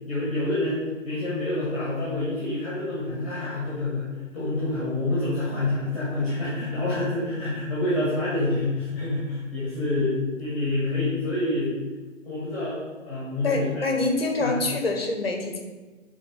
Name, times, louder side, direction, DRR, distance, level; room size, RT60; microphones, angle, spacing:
voice 1, 0.1-4.1 4.3-11.7 12.2-13.8 14.4-14.6, left 2 dB, 25° left, -8 dB, 1.8 m, -27 dB
voice 2, 13.4-15.6, left 2 dB, 50° left, 3 dB, 1.1 m, -25 dB
5.1 x 3.9 x 5.3 m, 1.3 s
figure-of-eight pair, 150°, 40 cm